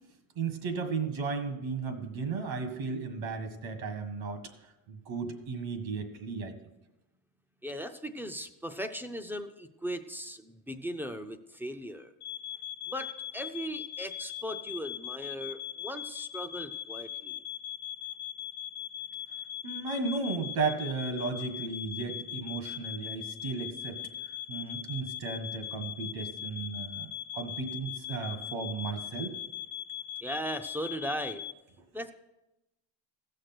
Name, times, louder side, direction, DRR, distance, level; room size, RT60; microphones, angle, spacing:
voice 1, 0.4-4.4 4.9-6.5 19.6-24.0 24.5-27.1 27.3-29.4, right 4 dB, 70° right, 7 dB, 1.8 m, -34 dB
voice 2, 7.6-12.1 12.9-17.4 30.2-31.4 31.9-32.1, equal, 5° right, 8 dB, 0.3 m, -38 dB
sound 1, 12.2-31.5, left 10 dB, 55° left, 0.5 m, -40 dB
15.5 x 6.6 x 6.0 m, 0.97 s
cardioid pair, 150°, 48 cm